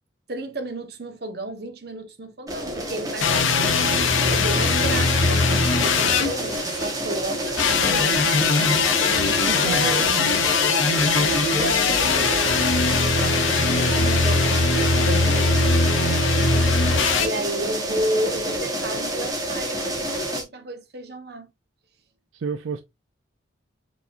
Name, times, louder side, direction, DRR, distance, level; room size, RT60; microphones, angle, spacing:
voice 1, 0.3-8.2 9.4-10.4 11.1-13.6 13.8-15.4 17.2-21.5, right 1 dB, 55° right, 1.0 m, -32 dB
sound 1, 2.5-20.4, right 1 dB, 20° right, 1.2 m, -28 dB
sound 2, 3.2-6.9 7.6-17.3, left 4 dB, 85° left, 0.7 m, -21 dB
voice 2, 9.3-10.3 22.3-22.8, right 5 dB, 90° right, 0.4 m, -31 dB
4.7 x 3.9 x 2.5 m
head